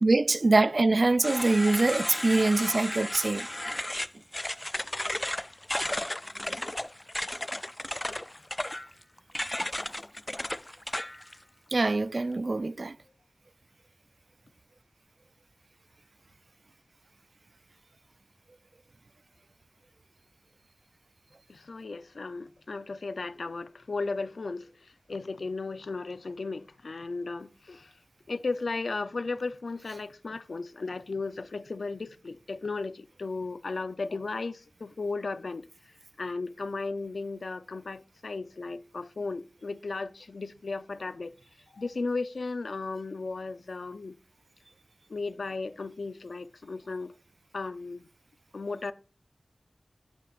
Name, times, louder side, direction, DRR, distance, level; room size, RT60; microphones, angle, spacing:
voice 1, 0.0-3.5 11.7-12.9, right 2 dB, 55° right, 0.3 m, -24 dB
sound 1, 1.2-11.3, left 1 dB, 20° left, 0.3 m, -34 dB
voice 2, 21.5-24.7 25.1-27.9 28.3-35.6 36.2-41.3 41.7-44.1 45.1-47.1 47.5-48.1 48.5-48.9, left 3 dB, 80° left, 0.5 m, -35 dB
11.0 x 8.5 x 2.5 m
wide cardioid pair, 75°, 0 cm